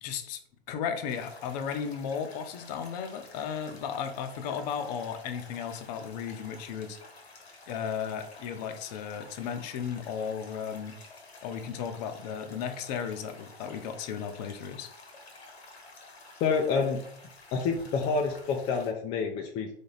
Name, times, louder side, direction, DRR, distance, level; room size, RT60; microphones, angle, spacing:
voice 1, 0.0-0.4 0.7-7.0 7.7-11.0 11.4-14.9, left 7 dB, 40° left, 7 dB, 0.7 m, -35 dB
sound 1, 1.1-18.9, left 3 dB, 85° left, 1.3 m, -51 dB
voice 2, 16.4-17.0 17.5-19.7, left 5 dB, 20° left, 1 dB, 0.4 m, -28 dB
3.7 x 3.5 x 3.9 m, 0.67 s
hypercardioid pair, 115°, 31 cm